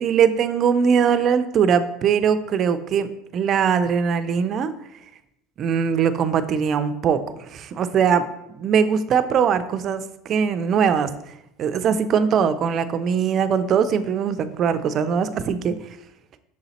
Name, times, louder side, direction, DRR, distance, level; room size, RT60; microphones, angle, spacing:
voice 1, 0.0-4.7 5.6-8.2 8.6-11.1 11.6-15.7, right 7 dB, 35° right, 11 dB, 0.4 m, -21 dB
6.3 x 4.0 x 4.1 m, 0.85 s
cardioid pair, 150°, 0 cm